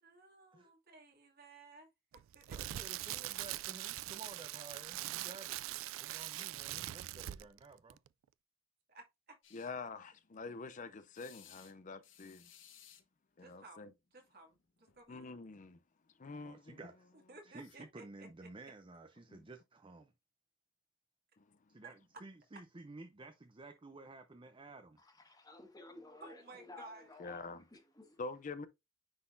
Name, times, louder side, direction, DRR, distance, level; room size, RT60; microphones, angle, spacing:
voice 1, 0.0-2.8 8.9-9.4 13.4-15.4 17.3-18.3 21.8-21.9 26.2-27.1, right 3 dB, 55° right, 2.2 m, -56 dB
Crackle, 2.1-7.6 7.9-8.1, right 15 dB, 90° right, 0.3 m, -42 dB
voice 2, 2.5-5.6 6.0-8.0 16.4-17.1 17.4-20.1 21.7-25.0, right 3 dB, 25° right, 0.6 m, -53 dB
sound 1, 9.4-9.7 11.1-11.7 12.0-13.0 14.4-14.6 14.9-15.0 17.6-17.8, left 10 dB, 70° left, 1.0 m, -60 dB
voice 3, 9.5-12.5 13.4-13.9 15.1-15.8 16.2-16.8 19.3-19.4 21.4-21.6 27.2-27.6 28.2-28.7, left 4 dB, 40° left, 0.5 m, -46 dB
voice 4, 25.0-28.2, left 2 dB, 20° left, 1.5 m, -55 dB
9.6 x 4.0 x 2.6 m
head